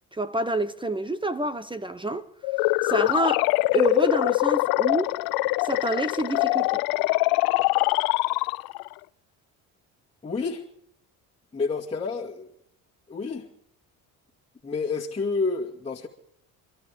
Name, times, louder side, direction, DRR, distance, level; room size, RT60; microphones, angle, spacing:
voice 1, 0.1-2.3 2.8-5.2 5.6-6.7, right 2 dB, 15° right, 1.0 m, -28 dB
sound 1, 2.4-8.9, left 21 dB, 80° left, 0.6 m, -23 dB
voice 2, 10.2-10.6 11.5-12.5 13.1-13.5 14.6-16.1, left 4 dB, 15° left, 2.3 m, -29 dB
29.0 x 13.5 x 3.7 m
supercardioid pair, 85°, 36 cm